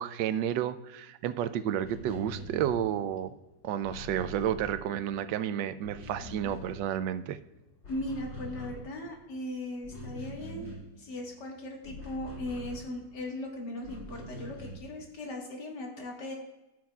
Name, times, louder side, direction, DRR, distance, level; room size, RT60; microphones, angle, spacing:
voice 1, 0.0-3.3 3.6-7.4, right 10 dB, 85° right, 13 dB, 1.2 m, -31 dB
sound 1, 1.8-5.4 5.7-7.4 7.7-13.3 13.8-15.0, left 1 dB, 85° left, 3.6 m, -44 dB
voice 2, 7.9-16.3, left 1 dB, 70° left, 1 dB, 2.2 m, -38 dB
15.0 x 6.4 x 2.3 m, 1.0 s
omnidirectional pair, 1.9 m